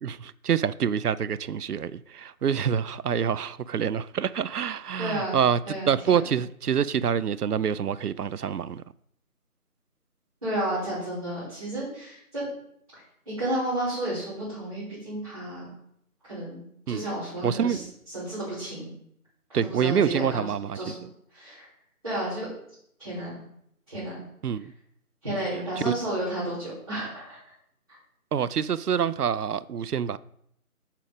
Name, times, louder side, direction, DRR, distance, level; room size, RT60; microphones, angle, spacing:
voice 1, 0.0-5.6 5.9-8.8 16.9-17.0 17.4-17.8 19.5-20.8 24.4-24.7 25.9-26.0 28.3-30.2, right 8 dB, 85° right, 0.5 m, -26 dB
voice 2, 5.0-5.4 5.7-6.3 10.4-12.5 12.9-15.7 16.3-16.6 16.9-18.9 19.5-20.5 20.7-20.9 21.3-21.6 22.0-22.5 23.0-23.3 23.9-24.2 25.2-27.4, right 1 dB, 25° right, 3.7 m, -32 dB
7.5 x 5.0 x 5.2 m
figure-of-eight pair, 180°, 45 cm